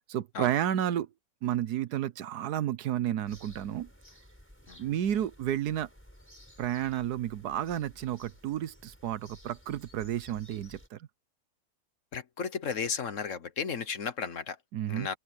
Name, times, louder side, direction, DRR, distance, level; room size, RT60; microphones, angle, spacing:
voice 1, 0.1-1.1 1.4-3.9 4.8-5.9 6.6-11.1 14.7-15.1, right 11 dB, 85° right, 1.4 m, -31 dB
sound 1, 3.2-10.9, equal, 5° left, 5.8 m, -55 dB
voice 2, 12.1-14.6 14.9-15.2, left 6 dB, 55° left, 1.4 m, -34 dB
omnidirectional pair, 1.6 m